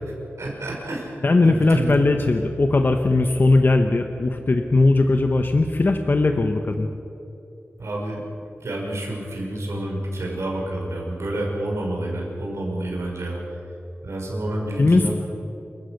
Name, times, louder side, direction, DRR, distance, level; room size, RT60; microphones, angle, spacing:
voice 1, 0.4-2.0 7.8-8.2 8.6-13.6 14.0-15.1, right 1 dB, 85° right, -1 dB, 5.7 m, -29 dB
voice 2, 1.2-6.9 14.8-15.1, left 2 dB, 45° left, 6 dB, 1.1 m, -19 dB
28.0 x 15.5 x 6.7 m, 2.9 s
wide cardioid pair, 100°, 5 cm